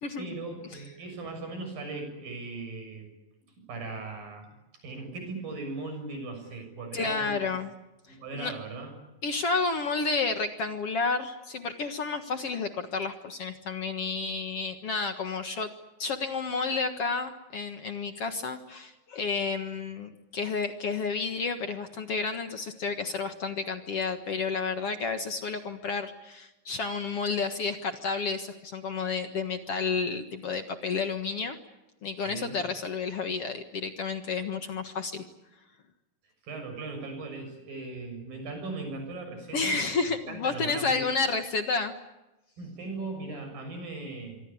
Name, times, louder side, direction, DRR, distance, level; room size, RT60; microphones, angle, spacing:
voice 1, 0.2-3.1 3.7-4.5 4.8-7.4 8.1-8.9 32.3-32.6 36.4-39.8 40.3-41.0 42.6-44.4, right 3 dB, 80° right, 5 dB, 8.5 m, -38 dB
voice 2, 6.9-7.7 8.3-8.6 9.2-15.7 16.0-31.6 32.0-35.2 39.5-41.9, left 4 dB, 50° left, 7 dB, 2.1 m, -31 dB
26.0 x 24.5 x 8.6 m, 1.0 s
omnidirectional pair, 4.0 m